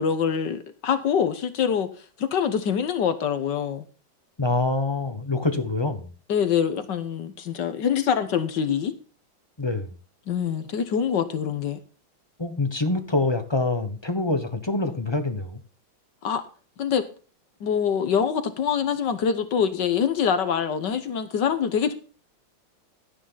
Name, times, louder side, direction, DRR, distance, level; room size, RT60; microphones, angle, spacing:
voice 1, 0.0-1.9 2.2-3.9 6.3-8.9 10.3-11.8 16.2-16.4 16.8-17.0 17.6-21.9, left 7 dB, 60° left, 1.6 m, -24 dB
voice 2, 4.4-6.1 9.6-9.9 12.4-15.6, left 2 dB, 20° left, 0.8 m, -25 dB
12.0 x 9.9 x 4.0 m
omnidirectional pair, 2.3 m